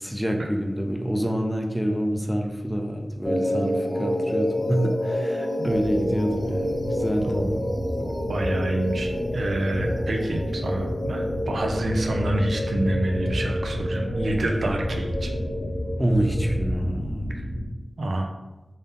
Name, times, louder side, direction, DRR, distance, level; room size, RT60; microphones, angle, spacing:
voice 1, 0.0-7.6 7.9-8.2 16.0-17.3, right 1 dB, 5° right, 3 dB, 0.5 m, -27 dB
sound 1, 3.2-16.7, left 1 dB, 65° left, 1.2 m, -29 dB
sound 2, 5.7-17.6, equal, 85° left, 1.0 m, -31 dB
voice 2, 8.3-15.3 18.0-18.3, right 1 dB, 90° right, 2 dB, 0.4 m, -27 dB
3.5 x 2.7 x 3.6 m, 1.0 s
wide cardioid pair, 95°, 0 cm